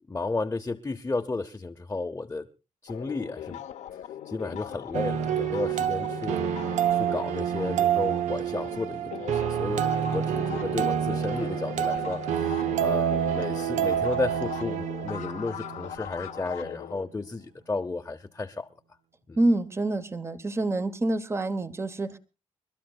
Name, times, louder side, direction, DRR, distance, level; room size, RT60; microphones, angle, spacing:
voice 1, 0.1-2.5 2.8-3.6 4.3-6.4 6.9-18.7 19.3-19.4, left 3 dB, 20° left, 0.8 m, -33 dB
sound 1, 2.9-8.8 9.1-17.1, left 10 dB, 85° left, 0.8 m, -40 dB
sound 2, 4.9-15.9, right 9 dB, 85° right, 0.7 m, -28 dB
voice 2, 19.4-22.2, right 2 dB, 20° right, 1.1 m, -27 dB
30.0 x 12.5 x 2.3 m
cardioid pair, 90°, 12 cm